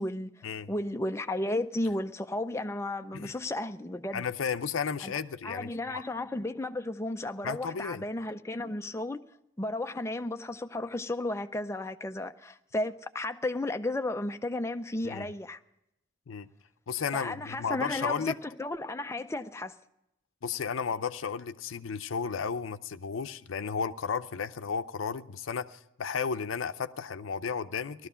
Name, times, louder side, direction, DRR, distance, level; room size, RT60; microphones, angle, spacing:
voice 1, 0.7-4.3 5.0-5.2 5.4-9.2 9.6-15.6 17.1-19.7, left 1 dB, 15° left, 0.5 m, -33 dB
voice 2, 4.1-6.0 7.4-8.1 15.0-15.3 16.3-16.5 16.9-18.3 20.4-28.1, left 6 dB, 85° left, 0.5 m, -33 dB
17.5 x 13.0 x 5.6 m
head